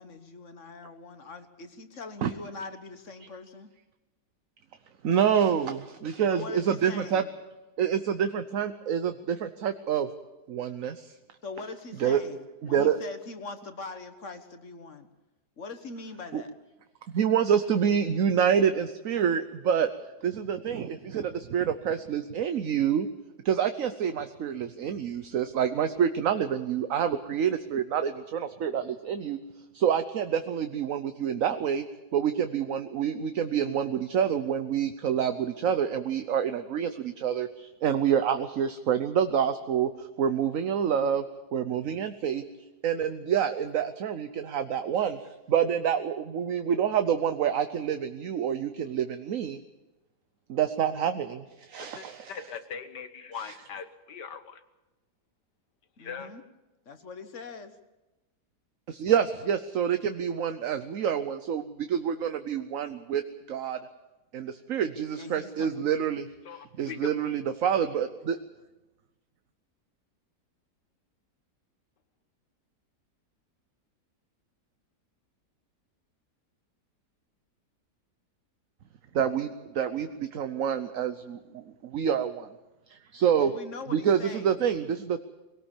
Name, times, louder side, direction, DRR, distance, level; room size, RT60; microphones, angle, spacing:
voice 1, 0.0-3.7 6.3-7.3 11.4-15.1 15.6-16.5 56.0-56.4 56.8-57.7 65.2-65.7 83.4-84.6, left 3 dB, 50° left, 9 dB, 1.7 m, -42 dB
voice 2, 5.0-7.2 7.8-10.1 10.5-11.1 12.0-12.2 12.6-13.0 16.3-16.4 17.1-19.9 20.2-23.1 23.4-29.4 29.7-31.8 32.1-41.2 41.5-42.4 42.8-45.2 45.5-49.6 50.5-52.3 58.9-63.2 63.5-63.8 64.3-66.3 66.8-68.4 79.1-82.5 82.9-83.5 83.9-85.2, right 8 dB, 60° right, 9 dB, 1.1 m, -27 dB
voice 3, 51.9-54.6 56.0-56.3 66.4-67.3, left 6 dB, 90° left, 9 dB, 1.9 m, -40 dB
22.0 x 18.5 x 7.2 m, 1.0 s
omnidirectional pair, 1.8 m